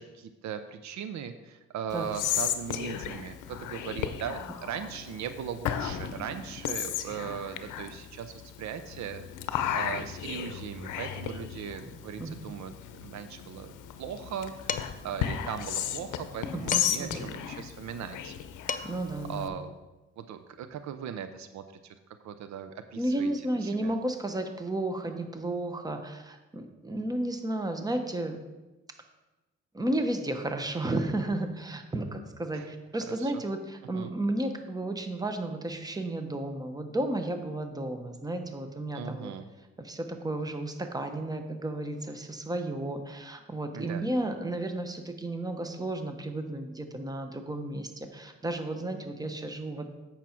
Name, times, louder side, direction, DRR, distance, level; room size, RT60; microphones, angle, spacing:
voice 1, 0.0-9.3 9.7-18.4 19.3-19.7 20.2-21.9 22.2-23.3 23.6-23.9 32.5-32.7 33.0-33.4 33.9-34.1 38.9-39.5 43.7-44.0, right 8 dB, 65° right, 10 dB, 0.6 m, -39 dB
Whispering, 1.9-19.5, left 10 dB, 85° left, 0.7 m, -35 dB
Dishes pots and pans, 14.7-15.1 16.7-17.2 18.3-18.4 18.7-19.1, left 6 dB, 30° left, 0.4 m, -35 dB
voice 2, 16.5-17.3 18.8-19.5 23.0-28.4 29.7-39.3 39.8-49.9, right 1 dB, 10° right, 6 dB, 0.9 m, -33 dB
8.3 x 5.8 x 4.4 m, 1.1 s
cardioid pair, 90°, 30 cm